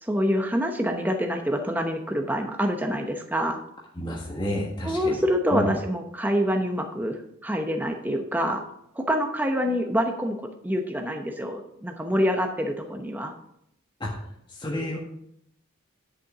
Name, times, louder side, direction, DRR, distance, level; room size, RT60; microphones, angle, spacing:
voice 1, 0.0-3.6 4.8-8.6 9.0-10.4 10.6-13.3, equal, 10° right, 4 dB, 0.9 m, -26 dB
voice 2, 3.9-5.2 5.5-5.7 14.0-14.1 14.5-15.0, left 1 dB, 20° left, -3 dB, 1.5 m, -29 dB
11.0 x 6.9 x 4.9 m, 0.74 s
head